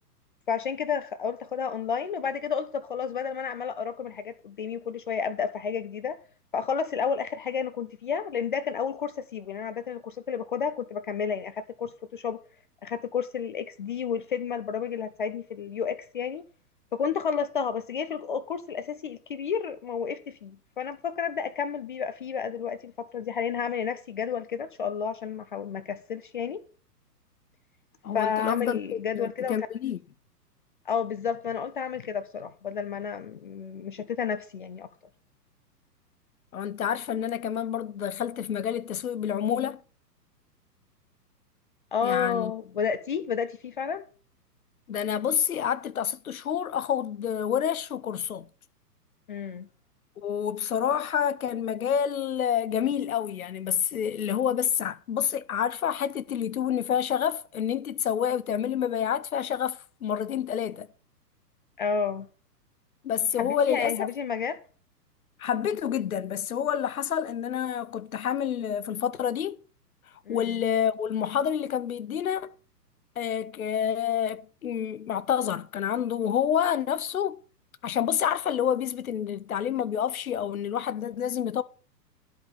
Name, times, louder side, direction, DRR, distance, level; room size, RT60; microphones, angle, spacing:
voice 1, 0.5-6.2 6.5-12.4 12.8-16.4 16.9-26.6 28.1-29.6 30.9-34.9 41.9-44.0 49.3-49.7 61.8-62.3 63.4-64.6 70.3-70.6, left 6 dB, 35° left, 0.5 m, -31 dB
voice 2, 28.0-30.0 36.5-39.8 42.0-42.5 44.9-48.5 50.2-60.9 63.0-64.1 65.4-69.6 70.3-72.5 73.2-77.4 77.8-81.6, left 9 dB, 60° left, 0.8 m, -28 dB
11.0 x 5.2 x 7.0 m
figure-of-eight pair, 115°, 49 cm